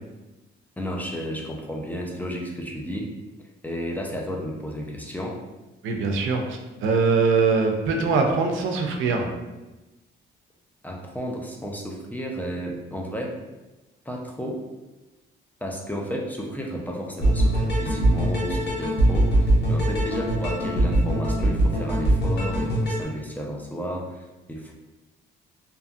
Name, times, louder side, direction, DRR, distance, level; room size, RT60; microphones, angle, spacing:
voice 1, 0.8-3.1 3.6-5.4 10.8-13.4 14.1-14.6 15.6-24.7, equal, 10° left, 0 dB, 0.4 m, -32 dB
voice 2, 5.8-9.3, right 4 dB, 80° right, 3 dB, 0.5 m, -22 dB
sound 1, 17.2-23.0, right 1 dB, 60° left, 0.9 m, -22 dB
2.7 x 2.3 x 2.5 m, 1.1 s
cardioid pair, 90°, 20 cm